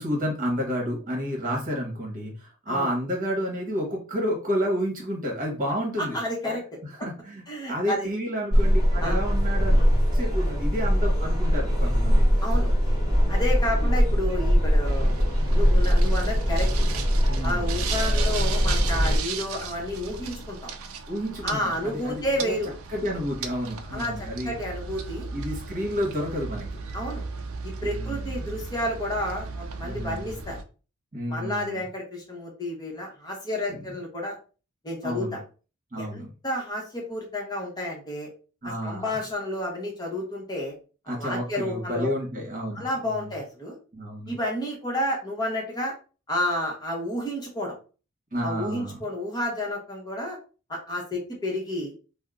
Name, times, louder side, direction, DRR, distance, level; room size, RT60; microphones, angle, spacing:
voice 1, 0.0-6.2 6.8-9.8 10.1-12.2 13.7-13.9 17.3-17.7 21.1-22.6 22.9-24.6 25.3-26.7 27.8-28.5 29.8-30.3 31.1-31.8 33.7-33.9 35.0-35.4 35.9-36.3 38.6-39.2 41.1-43.3 43.9-44.3 48.3-49.0, equal, 40° right, -1 dB, 1.2 m, -30 dB
voice 2, 6.0-6.6 7.5-8.1 9.0-9.2 12.4-12.7 13.3-15.1 15.5-16.7 17.4-20.7 21.4-22.7 23.9-25.3 26.9-27.2 27.6-30.6 31.3-34.4 34.8-35.4 35.9-38.3 38.8-40.7 41.2-42.1 42.7-43.8 44.3-45.9 46.3-47.8 48.4-50.4 50.7-51.9, left 1 dB, 20° left, -1 dB, 1.0 m, -30 dB
sound 1, 8.5-19.2, equal, 20° right, 1.3 m, -21 dB
sound 2, 14.9-30.6, right 4 dB, 70° right, 0.4 m, -36 dB
2.7 x 2.1 x 3.5 m, 0.36 s
head